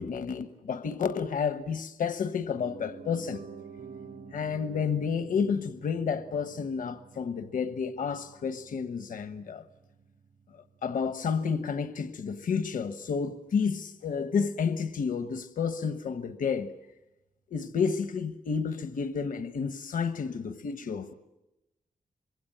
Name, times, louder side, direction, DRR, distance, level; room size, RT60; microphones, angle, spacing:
voice 1, 0.0-3.4 4.3-9.6 10.5-16.8 17.5-21.1, left 6 dB, 80° left, 1.1 m, -31 dB
Piano, 2.5-12.5 12.8-12.9, right 5 dB, 80° right, 4.0 m, -50 dB
26.0 x 22.5 x 8.8 m
wide cardioid pair, 175°, 14 cm